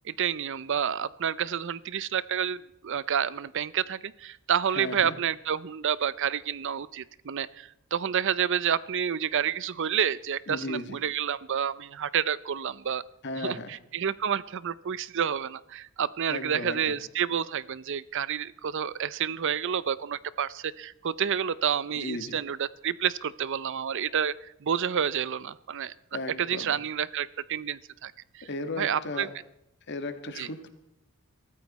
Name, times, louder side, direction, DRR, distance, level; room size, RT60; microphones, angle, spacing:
voice 1, 0.0-13.0 13.4-25.9 26.4-28.5 28.8-29.3 30.4-30.5, right 8 dB, 60° right, 19 dB, 0.5 m, -29 dB
voice 2, 4.7-5.2 10.5-11.0 13.2-13.7 16.3-17.0 21.9-22.3 26.1-26.8 28.4-29.3 29.9-30.7, left 2 dB, 55° left, 9 dB, 1.7 m, -35 dB
22.5 x 14.0 x 4.2 m, 0.77 s
head